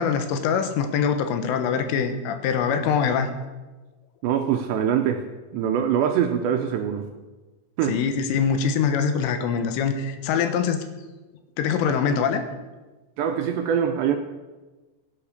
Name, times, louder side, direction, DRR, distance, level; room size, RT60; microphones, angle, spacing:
voice 1, 0.0-3.3 7.9-10.8 11.6-12.4, left 6 dB, 80° left, 8 dB, 3.6 m, -23 dB
voice 2, 4.2-5.2 5.5-7.1 7.8-8.0 13.2-14.2, right 8 dB, 80° right, 4 dB, 2.7 m, -23 dB
16.5 x 9.7 x 6.7 m, 1.2 s
omnidirectional pair, 5.8 m